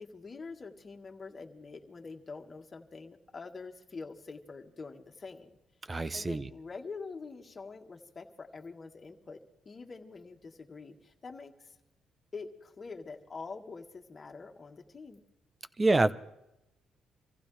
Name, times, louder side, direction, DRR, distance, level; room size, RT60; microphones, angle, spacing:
voice 1, 0.0-5.5 6.1-9.4 9.7-11.8 12.3-15.2, left 4 dB, 35° left, 1.9 m, -45 dB
voice 2, 5.9-6.5 15.8-16.1, right 2 dB, 25° right, 0.8 m, -26 dB
26.0 x 15.0 x 3.4 m
cardioid pair, 90°, 0 cm